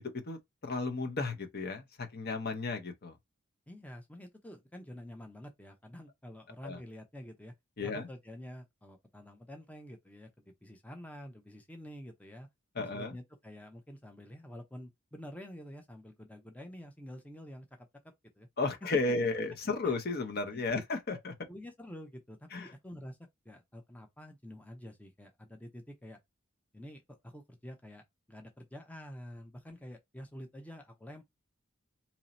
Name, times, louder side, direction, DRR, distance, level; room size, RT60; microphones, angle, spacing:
voice 1, 0.0-3.2 6.6-6.8 7.8-8.1 12.7-13.1 18.6-21.3 22.5-22.7, left 3 dB, 50° left, 0.8 m, -34 dB
voice 2, 3.7-7.5 7.8-10.3 10.6-12.5 12.9-18.5 19.2-19.3 19.8-20.0 20.5-20.6 21.1-21.2 21.5-23.2 23.4-26.2 26.7-28.0 28.3-31.2, equal, 5° left, 0.5 m, -48 dB
2.9 x 2.7 x 4.1 m
head